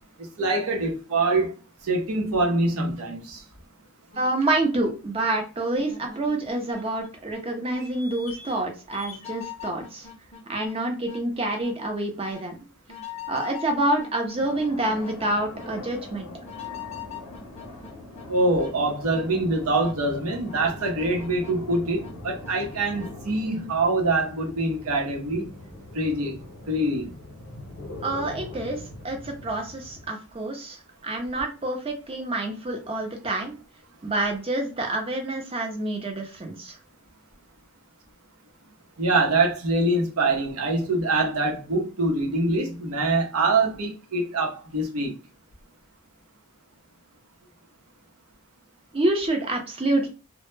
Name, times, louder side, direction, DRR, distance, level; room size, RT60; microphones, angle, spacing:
voice 1, 0.4-1.6 1.8-3.4 18.3-25.5 25.9-26.4 26.7-27.1 39.0-45.1, right 2 dB, 75° right, 0.7 m, -24 dB
sound 1, 4.1-4.3 4.8-4.9 5.7-7.4 7.7-8.6 8.9-10.7 11.0-11.2 11.6-11.7 12.3-12.4 12.9-14.7 15.0-15.2 15.5-15.7 16.4-18.2 18.6-18.7 19.1-19.3 19.8-19.9 20.5-22.1 22.4-22.6 23.0-23.1, left 7 dB, 30° left, 0.5 m, -41 dB
voice 2, 4.2-10.1 10.5-12.6 13.3-16.3 28.0-33.5 34.0-36.8 48.9-50.1, right 2 dB, 25° right, 0.5 m, -27 dB
sound 2, 14.3-30.1, left 2 dB, 80° left, 0.6 m, -42 dB
2.1 x 2.0 x 3.1 m
head